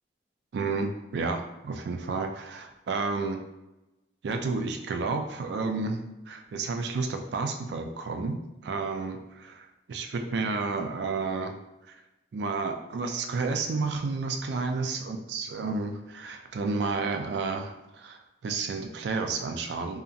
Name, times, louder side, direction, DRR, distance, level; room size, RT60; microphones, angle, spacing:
voice 1, 0.5-3.4 4.2-6.0 6.3-11.6 11.9-12.0 12.3-20.0, right 4 dB, 70° right, 5 dB, 0.3 m, -31 dB
2.8 x 2.6 x 2.4 m, 0.98 s
head